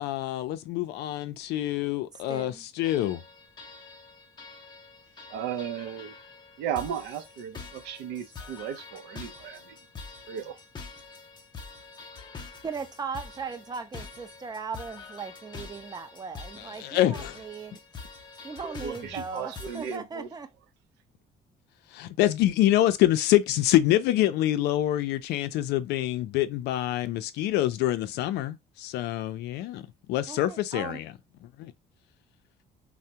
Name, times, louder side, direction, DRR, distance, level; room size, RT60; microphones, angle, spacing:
voice 1, 0.0-3.2 16.6-17.4 21.9-31.1 31.4-31.7, left 14 dB, 80° left, 0.4 m, -26 dB
voice 2, 2.3-2.6 12.6-17.8 18.4-20.5 30.3-31.0, right 5 dB, 25° right, 0.5 m, -38 dB
sound 1, 2.8-20.0, left 4 dB, 25° left, 0.5 m, -45 dB
voice 3, 5.3-6.2 6.6-9.8 10.3-10.6 18.6-20.3, right 8 dB, 90° right, 0.6 m, -35 dB
3.4 x 2.1 x 2.7 m
cardioid pair, 110°, 17 cm